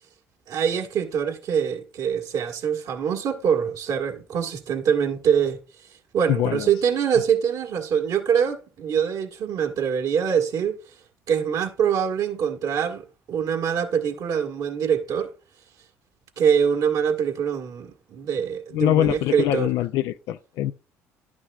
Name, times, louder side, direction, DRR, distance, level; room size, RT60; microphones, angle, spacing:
voice 1, 0.5-5.6 6.1-10.7 11.3-15.3 16.4-19.7, right 7 dB, 60° right, 1.7 m, -24 dB
voice 2, 6.3-6.6 18.7-20.7, left 12 dB, 65° left, 0.5 m, -23 dB
11.0 x 6.0 x 2.4 m
hypercardioid pair, 60°, 7 cm